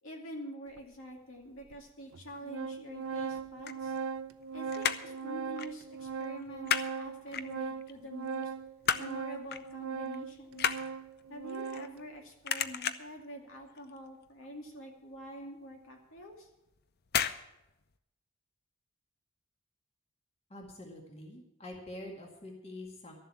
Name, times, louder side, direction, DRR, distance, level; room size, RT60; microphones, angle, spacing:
voice 1, 0.0-4.0 4.5-8.5 9.0-10.8 11.3-16.5, equal, 65° left, 1 dB, 2.5 m, -46 dB
Organ, 0.8-0.9 1.7-1.8 2.1-12.0, right 5 dB, 65° right, 0.5 m, -39 dB
sound 1, 3.4-4.4 4.7-5.2 5.6-5.8 6.1-6.9 7.3-7.9 8.3-9.2 9.5-9.7 10.0-12.2 12.4-13.2 13.6-14.0 14.2-14.3 14.7-14.8 15.2-15.3 16.2-16.5 17.1-17.4 17.7-17.8, left 8 dB, 50° left, 0.6 m, -33 dB
voice 2, 20.5-23.1, left 1 dB, 30° left, 0 dB, 2.0 m, -46 dB
13.0 x 7.5 x 8.6 m, 0.89 s
head